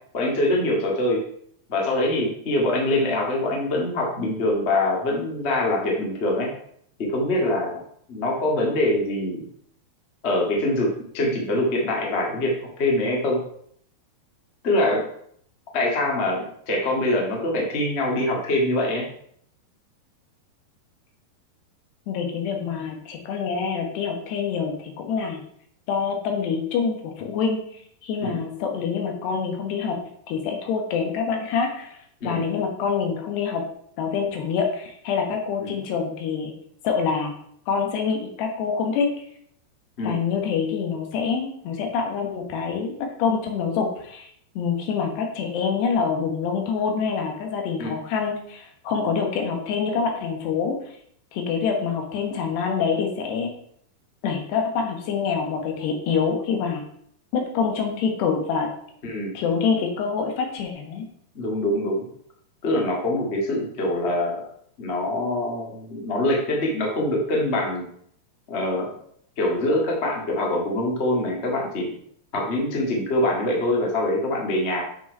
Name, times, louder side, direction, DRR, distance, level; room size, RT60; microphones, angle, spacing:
voice 1, 0.1-1.2 1.7-6.5 7.0-7.8 8.1-9.4 10.2-12.5 12.8-13.4 14.6-15.0 15.7-19.0 28.2-28.4 32.2-32.4 35.6-35.7 40.0-40.2 47.8-47.9 59.0-59.3 61.3-62.1 62.6-64.4 64.8-67.8 68.5-68.9 69.4-71.9 72.3-74.8, left 1 dB, 40° left, -1 dB, 0.8 m, -24 dB
voice 2, 22.1-25.4 25.9-27.6 28.0-30.0 30.3-32.0 32.3-33.6 34.0-36.5 36.8-37.3 37.7-39.1 40.0-42.9 43.2-44.3 44.6-50.8 51.3-53.5 54.2-56.8 57.3-58.7 59.4-61.1, left 6 dB, 85° left, 3 dB, 3.6 m, -26 dB
9.0 x 4.9 x 4.7 m, 0.65 s
omnidirectional pair, 4.7 m